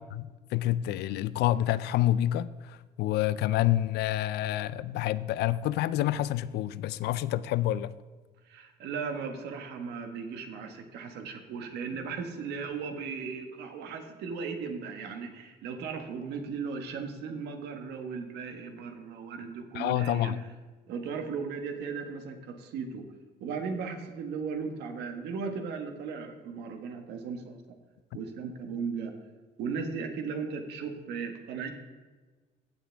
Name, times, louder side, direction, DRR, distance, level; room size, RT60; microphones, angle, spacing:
voice 1, 0.1-7.9 19.7-20.4, left 13 dB, 75° left, 0.4 m, -28 dB
voice 2, 8.5-20.4 20.9-23.0 23.4-27.6 28.1-29.1 29.6-31.7, right 5 dB, 80° right, 1.5 m, -36 dB
16.0 x 7.3 x 3.4 m
cardioid pair, 110°, 17 cm